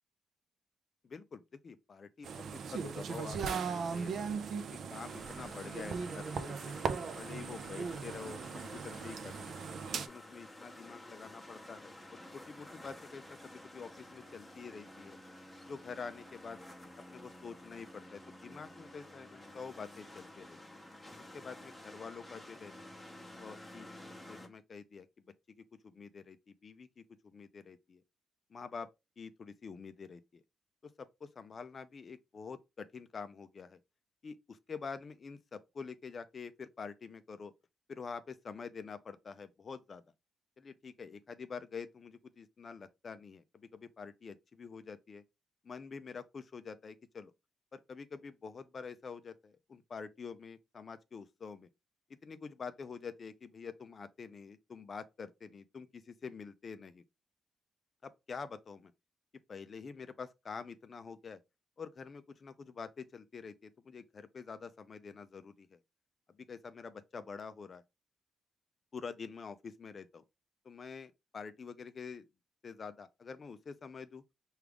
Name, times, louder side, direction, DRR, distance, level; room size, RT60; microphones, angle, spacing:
voice 1, 1.0-4.2 4.9-6.7 7.2-9.5 9.9-11.9 12.3-15.2 15.6-16.6 17.1-20.6 21.3-22.7 23.4-23.9 24.2-25.1 25.8-28.0 28.5-28.9 29.2-30.2 31.0-33.8 34.2-37.5 37.9-40.0 40.6-45.2 45.6-47.3 47.7-51.7 52.2-57.0 58.0-58.9 59.5-61.4 61.8-65.8 66.5-67.8 68.9-70.2 70.7-72.3 72.6-74.2, left 5 dB, 40° left, 0.3 m, -47 dB
sound 1, 2.2-10.1, right 5 dB, 60° right, 0.4 m, -38 dB
sound 2, 4.9-24.5, left 1 dB, 10° left, 0.7 m, -51 dB
4.8 x 2.3 x 3.3 m
cardioid pair, 140°, 0 cm